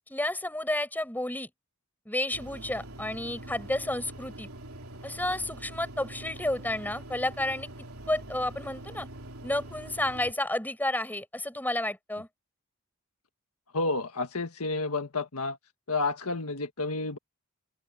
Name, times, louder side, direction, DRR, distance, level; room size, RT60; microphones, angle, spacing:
voice 1, 0.1-1.5 2.1-4.5 5.0-7.7 8.1-9.1 9.4-12.3, left 1 dB, 10° left, 7.7 m, -31 dB
sound 1, 2.3-10.3, right 1 dB, 70° right, 3.9 m, -44 dB
voice 2, 13.7-15.6 15.9-17.2, left 3 dB, 80° left, 1.7 m, -30 dB
open air
head